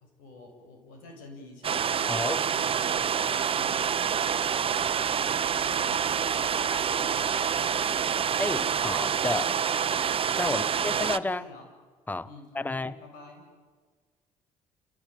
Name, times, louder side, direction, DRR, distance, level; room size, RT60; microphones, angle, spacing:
voice 1, 0.2-8.4 10.5-11.7 12.2-13.5, left 2 dB, 85° left, 7.6 m, -48 dB
sound 1, 1.6-11.2, right 7 dB, 40° right, 0.9 m, -27 dB
voice 2, 2.1-2.4 8.4-9.6 10.4-11.5 12.1-13.0, left 2 dB, 10° left, 1.0 m, -31 dB
29.5 x 17.5 x 9.2 m
supercardioid pair, 75°, 14 cm